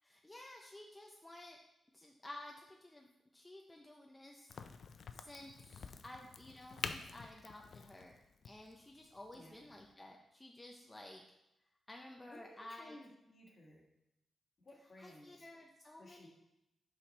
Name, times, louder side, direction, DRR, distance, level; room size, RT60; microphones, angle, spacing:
voice 1, 0.0-1.6 1.9-4.6 5.1-8.1 8.4-11.2 11.9-13.0 15.0-16.3, left 1 dB, 15° left, 1 dB, 0.6 m, -53 dB
Crack, 4.5-9.9, left 5 dB, 65° left, 0.4 m, -48 dB
voice 2, 12.3-13.9 14.6-15.5 16.0-16.3, left 1 dB, 45° left, 0 dB, 1.5 m, -57 dB
5.8 x 5.0 x 4.1 m, 0.88 s
cardioid pair, 100°, 0 cm